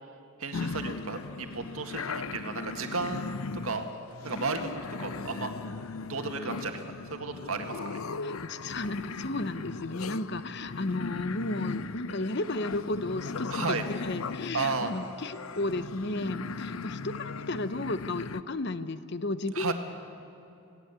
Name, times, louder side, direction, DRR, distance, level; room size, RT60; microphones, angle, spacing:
voice 1, 0.4-3.2 3.6-3.9 4.2-5.5 6.1-7.8 13.5-13.8 14.5-14.9 19.5-19.7, right 4 dB, 80° right, 5 dB, 1.9 m, -33 dB
sound 1, 0.5-18.4, left 4 dB, 80° left, 0.6 m, -38 dB
voice 2, 8.2-19.7, left 2 dB, 50° left, 13 dB, 0.9 m, -33 dB
27.5 x 18.0 x 8.3 m, 2.8 s
head